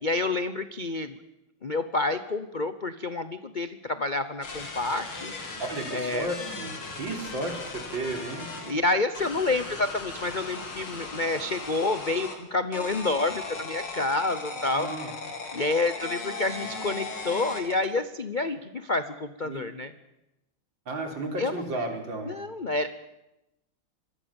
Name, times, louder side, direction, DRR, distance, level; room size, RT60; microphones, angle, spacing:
voice 1, 0.0-1.2 1.6-5.3 5.9-6.3 8.6-14.9 15.5-19.9 21.4-21.6 22.2-22.9, left 2 dB, 45° left, 11 dB, 0.6 m, -28 dB
sound 1, 4.4-8.7 9.1-12.4 12.7-17.9, left 3 dB, 85° left, 4.0 m, -37 dB
voice 2, 5.6-8.7 14.7-15.1 19.4-19.6 20.9-22.4, right 2 dB, 65° right, 3 dB, 4.6 m, -33 dB
26.5 x 20.5 x 7.1 m, 0.93 s
omnidirectional pair, 2.3 m